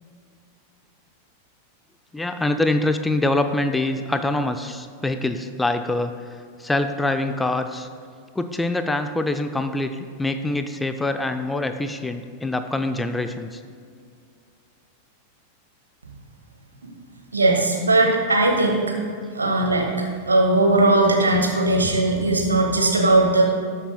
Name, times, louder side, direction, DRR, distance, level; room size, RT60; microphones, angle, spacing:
voice 1, 2.1-6.1 6.6-7.9 8.4-13.6, left 2 dB, 10° left, 8 dB, 0.5 m, -24 dB
voice 2, 17.3-18.9 19.3-19.9 20.3-23.4, right 2 dB, 75° right, 1 dB, 1.7 m, -18 dB
19.5 x 7.3 x 2.2 m, 2.2 s
figure-of-eight pair, 90°, 0 cm